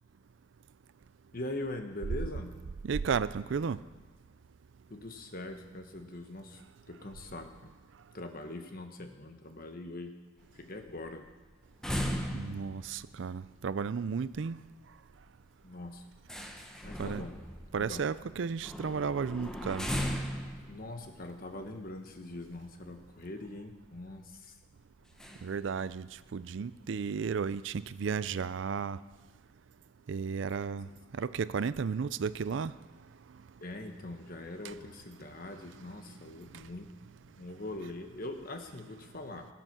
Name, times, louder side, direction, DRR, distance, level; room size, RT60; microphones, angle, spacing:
voice 1, 1.3-2.5 4.9-6.6 6.9-7.7 8.1-10.1 10.5-11.3 15.6-16.0 16.8-17.3 17.8-18.0 20.7-24.6 33.6-36.9 37.2-39.5, left 2 dB, 50° left, 5 dB, 1.3 m, -42 dB
voice 2, 2.8-3.8 12.3-14.6 17.0-17.2 17.7-19.9 25.4-26.1 26.3-29.0 30.1-30.9 31.1-32.7 34.6-34.7, right 6 dB, 70° right, 16 dB, 0.4 m, -33 dB
sound 1, 10.4-23.0 23.5-23.6 23.8-24.1 25.1-25.7 25.9-26.0 26.4-26.5 27.1-27.2 27.5-27.8 28.1-28.9, equal, 5° left, 1.0 m, -39 dB
17.0 x 7.9 x 6.1 m, 1.4 s
head